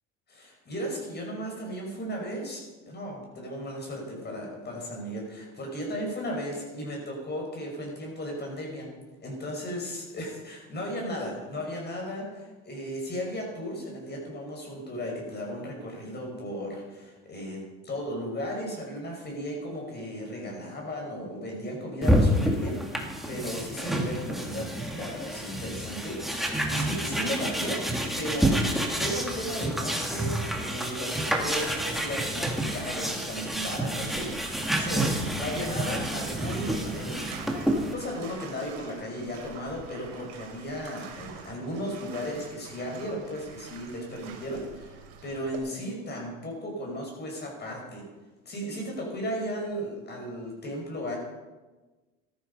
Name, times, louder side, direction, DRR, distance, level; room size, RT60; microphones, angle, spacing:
voice 1, 0.3-8.9 9.2-27.8 28.2-34.5 34.7-37.3 37.9-48.0 48.5-51.2, equal, 30° left, 0 dB, 5.9 m, -35 dB
sound 1, 22.0-37.9, right 1 dB, ahead, 2.2 m, -29 dB
Bathtub (filling or washing), 31.3-45.6, right 7 dB, 85° right, 2.8 m, -46 dB
14.0 x 13.0 x 5.4 m, 1.2 s
supercardioid pair, 110°, 32 cm